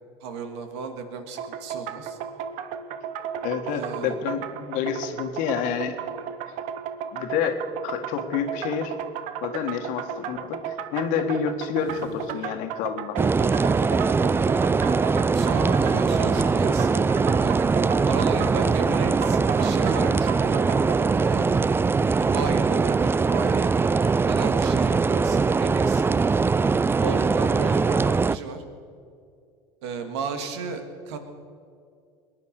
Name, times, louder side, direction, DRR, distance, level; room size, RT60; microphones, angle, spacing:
voice 1, 0.2-2.2 3.7-4.1 11.9-12.2 13.4-14.2 14.8-15.0 15.3-17.1 17.4-17.5 18.0-20.7 20.9-21.6 22.2-23.7 24.3-26.1 27.0-28.6 29.8-31.2, right 5 dB, 80° right, 7 dB, 1.9 m, -34 dB
sound 1, 1.4-21.0, right 8 dB, 65° right, 1.0 m, -34 dB
voice 2, 3.4-6.0 7.1-9.0 9.4-13.2, left 7 dB, 70° left, 6 dB, 1.7 m, -28 dB
sound 2, 13.2-28.4, right 4 dB, 15° right, 0.4 m, -22 dB
21.5 x 9.8 x 6.6 m, 2.3 s
hypercardioid pair, 85°, 14 cm